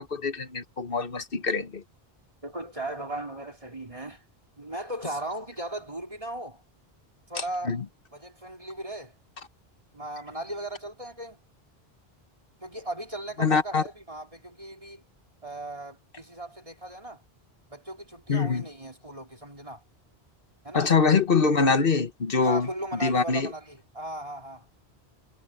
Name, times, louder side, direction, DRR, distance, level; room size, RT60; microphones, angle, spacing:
voice 1, 0.0-1.8 7.6-7.8 13.4-13.8 18.3-18.6 20.7-22.7 23.0-23.5, left 4 dB, 60° left, 1.5 m, -24 dB
voice 2, 2.4-4.2 4.6-6.6 7.3-7.8 8.1-9.1 9.9-11.4 12.6-15.0 15.4-17.2 17.7-19.8 20.6-20.9 22.4-24.7, right 1 dB, 35° right, 4.1 m, -37 dB
omnidirectional pair, 1.0 m